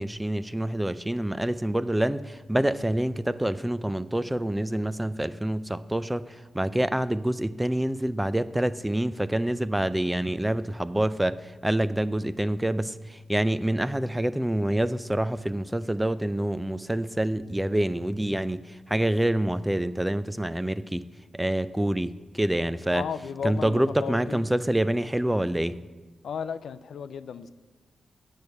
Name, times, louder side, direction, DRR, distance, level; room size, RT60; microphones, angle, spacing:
voice 1, 0.0-6.3 6.5-18.6 18.9-21.0 21.3-23.0 23.4-25.8, right 1 dB, 10° right, 0.4 m, -26 dB
voice 2, 22.9-24.4 26.2-27.5, left 7 dB, 80° left, 0.4 m, -34 dB
8.8 x 6.4 x 8.2 m
cardioid pair, 95°, 0 cm